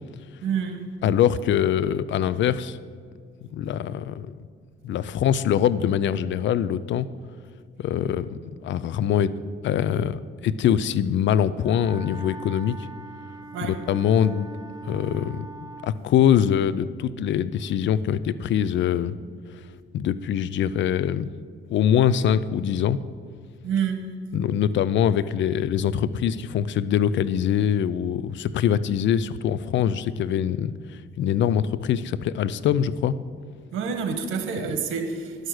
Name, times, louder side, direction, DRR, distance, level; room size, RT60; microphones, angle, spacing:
voice 1, 0.4-0.9 13.5-13.8 23.6-24.2 33.7-35.5, right 6 dB, 90° right, 1.4 m, -28 dB
voice 2, 1.0-2.8 3.5-4.3 4.8-7.1 7.8-9.3 9.6-12.9 13.7-14.5 14.8-19.1 19.5-19.6 19.9-21.3 21.7-23.0 24.3-33.1, left 9 dB, 70° left, 0.5 m, -23 dB
Wind instrument woodwind instrument, 11.6-16.0, right 2 dB, 20° right, 0.8 m, -42 dB
11.0 x 6.5 x 7.8 m
cardioid pair, 90°, 20 cm